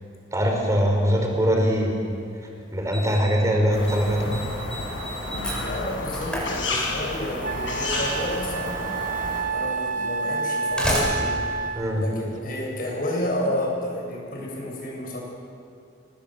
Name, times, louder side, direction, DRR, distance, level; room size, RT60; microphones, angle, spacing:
voice 1, 0.3-2.1 2.7-4.3 11.8-12.0, equal, 15° right, 1 dB, 4.8 m, -22 dB
Slam, 2.1-2.2 2.9-3.4 3.7-4.0 4.3-7.2 8.4-8.5 9.3-9.4 10.4-12.7, equal, 5° left, 6.5 m, -31 dB
sound 1, 3.7-9.4, left 2 dB, 85° left, 7.0 m, -31 dB
voice 2, 5.5-9.0 9.5-11.5 11.9-15.2, left 1 dB, 50° left, -1 dB, 7.6 m, -30 dB
Wind instrument woodwind instrument, 7.4-12.1, right 4 dB, 45° right, 1.0 m, -29 dB
28.0 x 20.0 x 7.8 m, 2.5 s
head